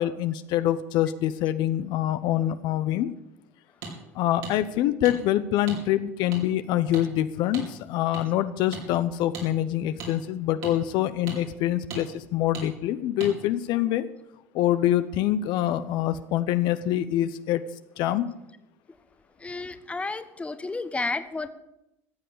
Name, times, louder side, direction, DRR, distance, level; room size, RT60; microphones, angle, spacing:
voice 1, 0.0-3.1 4.1-14.1 14.5-17.6 18.0-18.3, left 12 dB, 60° left, 11 dB, 0.8 m, -25 dB
sound 1, 3.8-3.9 4.4-4.5 5.0-5.2 5.7-5.8 6.3-6.4 6.9-7.1 7.5-7.7 8.1-8.2 8.7-8.8 9.3-9.5 10.0-10.1 10.6-10.7 11.3-11.4 11.9-12.0 12.5-12.7 13.2-13.3, right 4 dB, 75° right, 5.1 m, -36 dB
voice 2, 19.4-21.5, left 3 dB, 15° left, 11 dB, 1.2 m, -31 dB
14.5 x 7.7 x 8.5 m, 0.88 s
hypercardioid pair, 80°, 8 cm